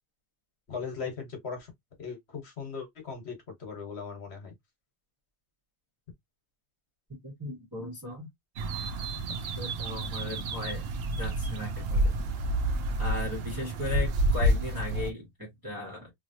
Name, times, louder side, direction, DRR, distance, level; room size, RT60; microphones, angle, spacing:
voice 1, 0.7-1.7 2.0-4.5, left 5 dB, 60° left, 1.3 m, -38 dB
voice 2, 7.2-8.3 9.6-10.9 11.2-12.2 13.0-16.1, left 1 dB, 20° right, 1.1 m, -37 dB
sound 1, 8.6-15.1, right 1 dB, 65° right, 0.8 m, -29 dB
3.1 x 2.6 x 2.6 m
omnidirectional pair, 1.3 m